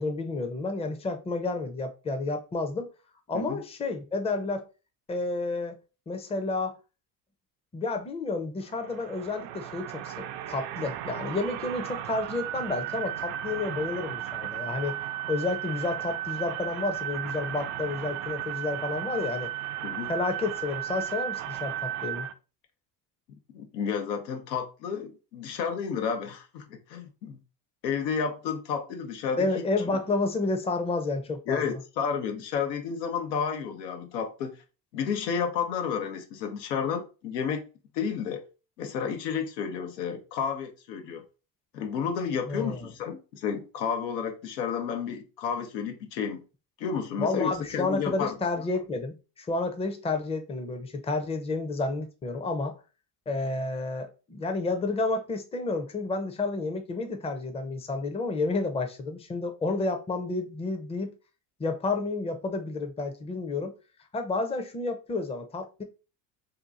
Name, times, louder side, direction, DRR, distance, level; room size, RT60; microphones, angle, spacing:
voice 1, 0.0-2.9 3.3-4.6 5.1-5.8 6.1-6.8 7.7-15.0 15.3-19.5 20.1-22.3 29.4-31.8 42.5-42.9 47.2-52.8 53.3-61.1 61.6-63.7 64.1-65.8, left 3 dB, 15° left, 0.6 m, -30 dB
sound 1, 8.7-22.3, right 12 dB, 65° right, 0.6 m, -35 dB
voice 2, 23.5-27.4 27.8-29.5 31.5-34.5 34.9-37.6 37.9-38.4 38.8-41.2 41.7-46.4 46.8-48.4, left 6 dB, 85° left, 0.8 m, -31 dB
2.8 x 2.5 x 3.6 m
hypercardioid pair, 75°, 49 cm